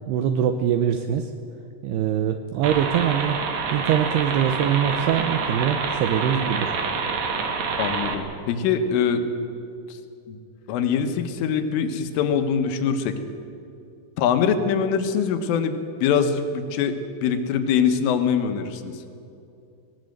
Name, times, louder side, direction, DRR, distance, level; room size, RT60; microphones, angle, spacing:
voice 1, 0.1-1.3 1.8-3.4 3.7-6.8, right 9 dB, 80° right, 7 dB, 2.3 m, -23 dB
sound 1, 2.6-8.2, right 5 dB, 60° right, 2.1 m, -27 dB
voice 2, 7.8-9.2 10.3-10.4 10.7-13.2 14.2-17.0 17.2-19.0, left 7 dB, 85° left, 7 dB, 3.8 m, -23 dB
18.5 x 18.5 x 7.9 m, 2.6 s
omnidirectional pair, 5.6 m